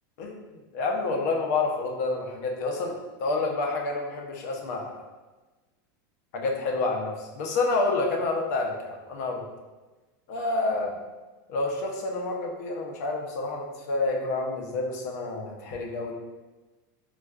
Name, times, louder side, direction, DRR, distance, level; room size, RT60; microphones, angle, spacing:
voice 1, 0.7-5.0 6.3-9.4 10.3-10.9 11.5-16.1, left 3 dB, 50° left, 1 dB, 0.5 m, -28 dB
4.4 x 2.3 x 2.3 m, 1.2 s
supercardioid pair, 175°, 11 cm